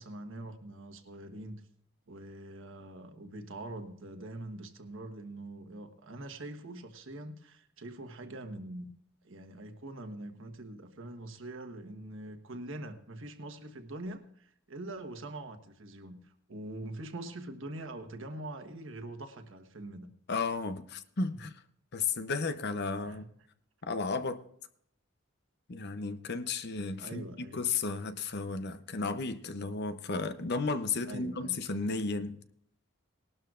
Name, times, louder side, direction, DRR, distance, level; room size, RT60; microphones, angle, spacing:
voice 1, 0.0-1.6 2.1-8.9 9.2-20.1 21.3-21.4 23.0-23.3 27.0-27.6 31.1-31.6, right 1 dB, 65° right, 1.3 m, -44 dB
voice 2, 20.3-21.5 21.9-23.2 23.8-24.4 25.7-32.4, left 4 dB, 55° left, 0.8 m, -33 dB
19.5 x 12.5 x 2.5 m
head